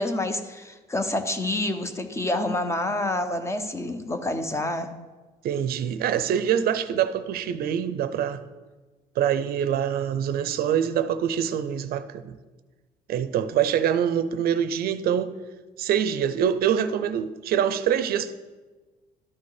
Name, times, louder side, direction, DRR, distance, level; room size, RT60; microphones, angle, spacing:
voice 1, 0.0-4.9, left 1 dB, 15° left, 0.7 m, -28 dB
voice 2, 5.4-8.4 9.2-12.3 13.1-15.3 15.8-18.3, right 9 dB, 65° right, 0.6 m, -25 dB
12.5 x 4.3 x 4.8 m
cardioid pair, 110°, 17 cm